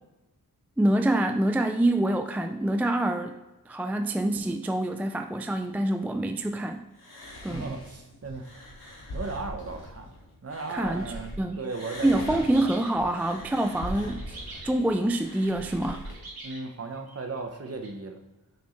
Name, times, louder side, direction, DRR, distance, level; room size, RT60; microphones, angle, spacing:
voice 1, 0.8-3.4 3.7-6.9 7.4-7.7 10.7-11.6 12.0-14.4 14.6-16.1, right 1 dB, 5° right, 6 dB, 0.3 m, -26 dB
sound 1, 7.0-11.3 11.6-16.1, left 1 dB, 80° left, 1.8 m, -41 dB
voice 2, 7.5-8.6 9.1-10.1 10.4-12.7 16.4-18.2, right 3 dB, 40° right, 5 dB, 0.9 m, -36 dB
sound 2, 11.5-17.9, right 2 dB, 90° right, 2.0 m, -47 dB
7.0 x 6.0 x 3.2 m, 1.1 s
wide cardioid pair, 115°, 37 cm